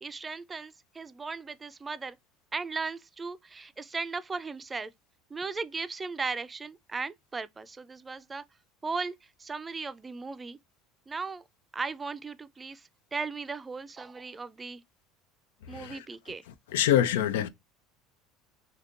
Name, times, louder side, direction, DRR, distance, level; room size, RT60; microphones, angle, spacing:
voice 1, 0.0-2.2 2.5-4.9 5.3-8.4 8.8-9.1 9.4-10.6 11.1-11.4 11.7-12.8 13.1-14.8 15.7-16.4, right 4 dB, 20° right, 0.4 m, -36 dB
voice 2, 16.7-17.5, left 11 dB, 80° left, 0.4 m, -25 dB
3.5 x 2.7 x 2.4 m
hypercardioid pair, 85°, 0 cm